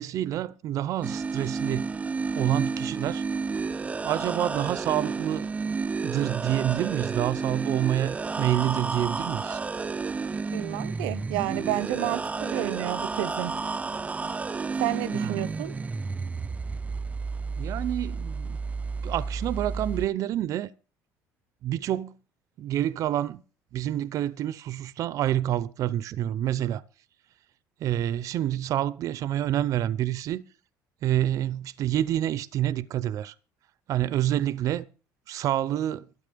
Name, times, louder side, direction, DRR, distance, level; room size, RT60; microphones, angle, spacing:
voice 1, 0.0-1.9 2.3-3.2 4.0-5.5 6.0-9.6 15.1-15.5 17.6-18.6 19.0-20.7 21.6-22.1 22.6-23.4 23.7-26.8 27.8-30.4 31.0-33.3 33.9-34.9 35.3-36.1, right 12 dB, 60° right, 0.7 m, -28 dB
sound 1, 1.0-20.1, right 4 dB, 20° right, 0.5 m, -31 dB
voice 2, 10.5-13.5 14.8-15.7, right 15 dB, 85° right, 1.0 m, -30 dB
12.5 x 9.1 x 6.8 m
cardioid pair, 105°, 7 cm